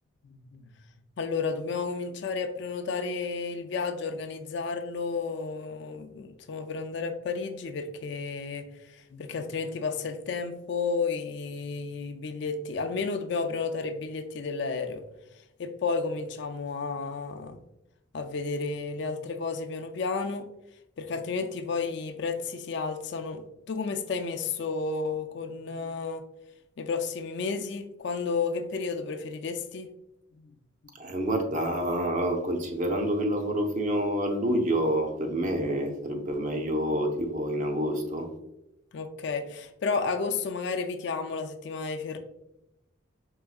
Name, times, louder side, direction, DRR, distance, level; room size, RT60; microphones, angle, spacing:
voice 1, 0.2-0.6 1.2-15.0 15.6-17.6 18.1-20.5 21.0-23.4 23.7-26.2 26.8-29.9 30.3-30.5 38.9-42.2, left 4 dB, 55° left, 6 dB, 0.4 m, -32 dB
voice 2, 31.0-38.3, right 1 dB, 40° right, 4 dB, 0.6 m, -28 dB
4.6 x 3.5 x 2.3 m, 0.86 s
head